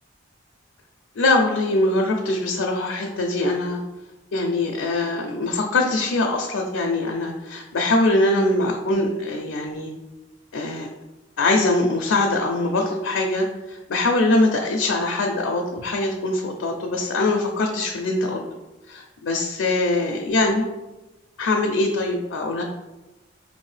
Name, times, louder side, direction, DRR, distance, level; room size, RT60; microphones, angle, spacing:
voice 1, 1.2-3.8 4.3-9.9 10.5-10.9 11.4-18.4 18.9-20.7 21.4-22.6, left 2 dB, 90° left, 2 dB, 0.5 m, -22 dB
5.0 x 2.6 x 3.2 m, 1.1 s
head